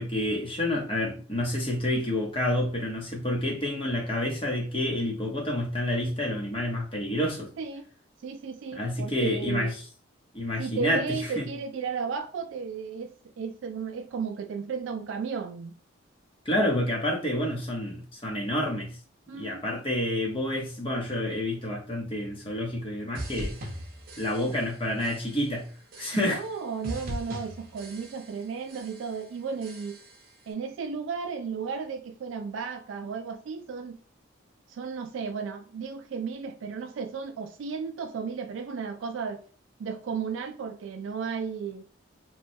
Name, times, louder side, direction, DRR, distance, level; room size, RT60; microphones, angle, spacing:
voice 1, 0.0-7.5 8.7-9.8 10.3-11.5 16.4-19.0 19.4-23.6 24.2-25.7 26.0-26.4, left 1 dB, 25° left, 0.8 m, -29 dB
voice 2, 8.2-9.7 10.6-15.7 19.3-19.7 24.4-24.5 26.1-30.0 30.5-34.0 34.7-39.4 39.8-41.8, right 5 dB, 75° right, 0.3 m, -34 dB
sound 1, 23.1-24.7 25.0-25.5 25.9-26.6 26.8-28.4 28.7-29.2 29.6-30.2, equal, 45° right, 0.7 m, -40 dB
3.0 x 2.2 x 2.6 m
head